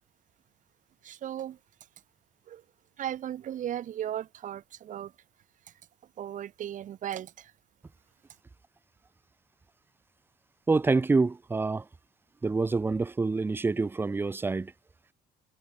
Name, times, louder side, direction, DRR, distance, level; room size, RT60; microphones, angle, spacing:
voice 1, 1.0-1.6 2.5-2.6 3.0-5.1 6.2-7.5, right 11 dB, 50° right, 0.7 m, -36 dB
voice 2, 10.7-11.8 12.4-14.7, right 3 dB, 15° right, 0.4 m, -26 dB
cardioid pair, 110°, 17 cm